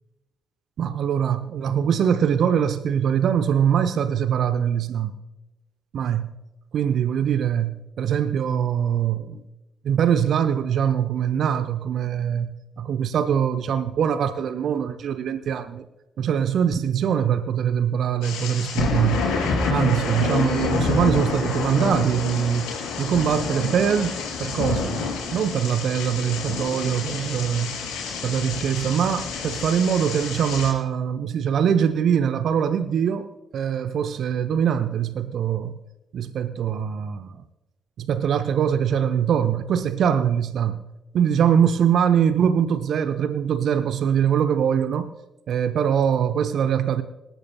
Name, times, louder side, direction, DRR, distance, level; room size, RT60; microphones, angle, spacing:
voice 1, 0.8-5.1 5.9-6.3 6.7-9.4 9.8-15.8 16.2-19.2 19.7-22.7 23.0-25.0 25.3-27.8 28.2-33.3 33.5-35.7 36.1-37.4 38.0-40.8 41.1-45.1 45.5-47.0, right 8 dB, 55° right, 11 dB, 0.7 m, -23 dB
sound 1, 18.2-30.7, left 4 dB, 65° left, 4.4 m, -28 dB
26.0 x 13.5 x 2.2 m, 1.0 s
figure-of-eight pair, 40°, 0 cm